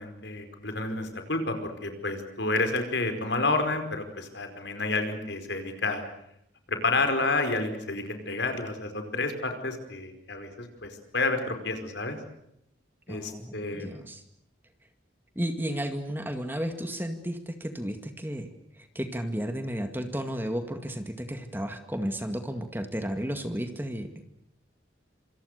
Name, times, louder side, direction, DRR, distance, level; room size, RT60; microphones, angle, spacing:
voice 1, 0.0-6.0 6.7-12.2 13.1-14.0, left 3 dB, 65° left, 7 dB, 5.0 m, -30 dB
voice 2, 13.1-14.2 15.4-24.1, equal, 10° right, 7 dB, 2.0 m, -33 dB
27.0 x 26.5 x 6.7 m, 0.78 s
head